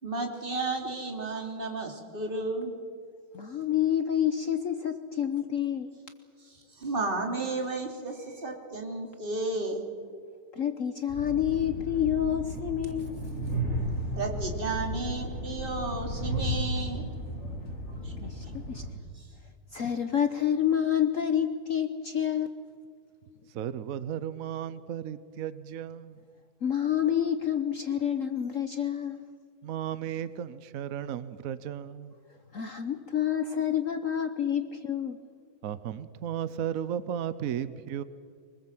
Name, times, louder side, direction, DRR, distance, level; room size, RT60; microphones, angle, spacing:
voice 1, 0.0-2.7 6.8-9.8 14.2-17.0 18.0-18.1 19.1-19.2, right 3 dB, 25° right, 2 dB, 2.9 m, -33 dB
voice 2, 3.3-5.9 10.5-13.2 13.5-14.1 18.2-18.8 19.7-22.5 26.6-29.2 32.5-35.2, left 9 dB, 55° left, 9 dB, 1.0 m, -28 dB
Train, 11.1-18.9, equal, 30° left, 3.7 m, -34 dB
voice 3, 23.5-26.2 29.6-32.1 35.6-38.0, right 10 dB, 70° right, 14 dB, 0.8 m, -34 dB
24.5 x 20.0 x 7.7 m, 2.1 s
omnidirectional pair, 2.3 m